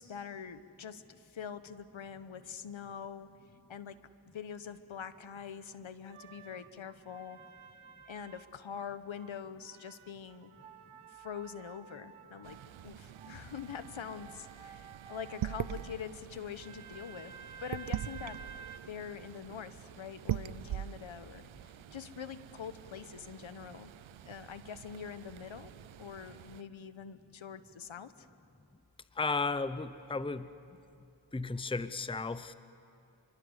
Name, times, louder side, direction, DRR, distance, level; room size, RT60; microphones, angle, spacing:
voice 1, 0.0-3.3 3.7-4.0 4.3-7.4 8.1-10.5 11.1-17.3 17.6-18.4 18.9-23.9 24.2-25.7 26.0-28.3, left 7 dB, 70° left, 12 dB, 1.2 m, -44 dB
sound 1, 6.1-9.4 9.6-16.0 16.6-18.8, right 7 dB, 90° right, 1.1 m, -52 dB
sound 2, 12.4-26.6, right 11 dB, 70° right, 0.7 m, -43 dB
voice 2, 29.1-30.8 31.3-32.5, left 3 dB, 10° left, 13 dB, 0.8 m, -34 dB
29.5 x 22.5 x 8.1 m, 2.7 s
cardioid pair, 65°, 49 cm